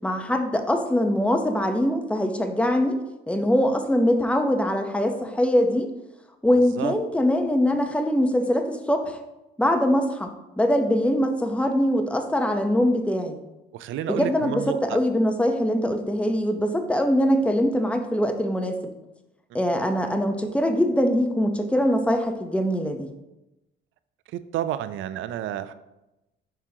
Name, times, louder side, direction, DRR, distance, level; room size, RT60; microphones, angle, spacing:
voice 1, 0.0-3.0 3.3-5.9 6.4-9.2 9.6-13.4 14.1-18.8 19.5-23.1, equal, 5° left, 5 dB, 0.8 m, -23 dB
voice 2, 6.5-6.9 13.7-15.0 19.5-19.6 24.3-25.7, right 11 dB, 80° right, 13 dB, 0.4 m, -31 dB
10.5 x 3.7 x 2.8 m, 0.96 s
cardioid pair, 90°, 20 cm